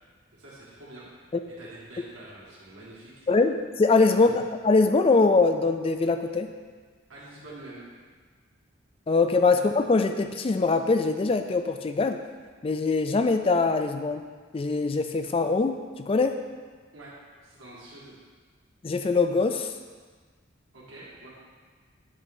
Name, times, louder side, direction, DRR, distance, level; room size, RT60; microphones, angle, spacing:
voice 1, 0.4-1.1 1.6-3.3 4.1-4.4 7.1-7.8 16.9-17.1 17.4-18.1 20.7-21.3, right 2 dB, 80° right, -8 dB, 1.9 m, -46 dB
voice 2, 3.3-6.5 9.1-12.2 12.6-14.2 14.5-16.4 18.8-19.7, left 3 dB, 25° left, 7 dB, 0.3 m, -23 dB
8.1 x 3.2 x 5.4 m, 1.5 s
head